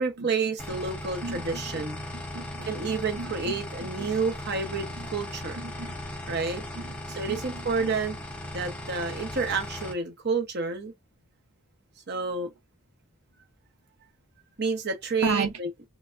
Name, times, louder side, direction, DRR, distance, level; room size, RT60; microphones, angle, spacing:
voice 1, 0.0-2.0 2.7-5.6 6.3-6.6 7.1-8.2 8.5-10.9 12.1-12.5 14.6-15.7, right 4 dB, 45° right, 0.9 m, -29 dB
sound 1, 0.6-9.9, left 1 dB, 5° left, 0.7 m, -37 dB
voice 2, 1.2-1.8 2.1-3.6 4.0-4.1 5.0-5.1 5.6-5.9 6.8-8.0 15.2-15.5, right 4 dB, 85° right, 0.6 m, -35 dB
3.4 x 2.2 x 2.5 m
head